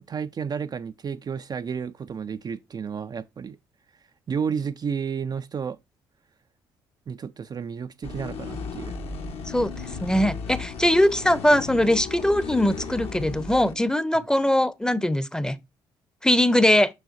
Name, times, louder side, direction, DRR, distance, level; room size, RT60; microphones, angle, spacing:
voice 1, 0.0-3.6 4.3-5.8 7.1-8.9, right 6 dB, 35° right, 0.4 m, -31 dB
sound 1, 8.0-13.7, left 4 dB, 60° left, 1.4 m, -35 dB
voice 2, 10.0-15.6 16.2-16.9, left 1 dB, 5° left, 0.7 m, -21 dB
6.4 x 6.2 x 2.5 m
hypercardioid pair, 45°, 11 cm